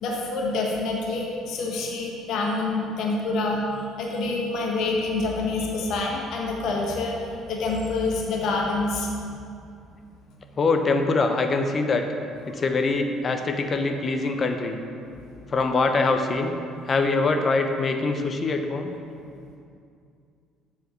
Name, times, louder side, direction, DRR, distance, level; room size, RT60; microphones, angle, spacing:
voice 1, 0.0-3.6 4.0-9.1 14.3-14.4, left 3 dB, 60° left, -1 dB, 1.3 m, -27 dB
voice 2, 10.6-12.0 12.5-14.8 15.5-16.5 16.9-18.9, left 3 dB, 40° left, 6 dB, 0.9 m, -23 dB
7.8 x 4.8 x 6.9 m, 2.4 s
hypercardioid pair, 55°, 0 cm